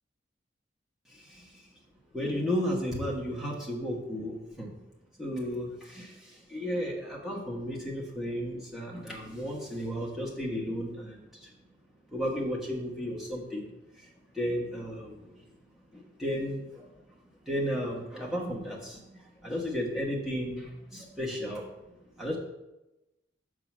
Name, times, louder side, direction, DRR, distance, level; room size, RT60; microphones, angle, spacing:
voice 1, 1.1-1.5 2.1-4.7 5.2-11.5 12.1-13.7 14.0-14.1 14.3-15.4 15.9-16.9 17.5-19.0 19.4-21.7 22.2-22.4, equal, ahead, -4 dB, 1.2 m, -34 dB
6.2 x 3.9 x 5.9 m, 0.98 s
head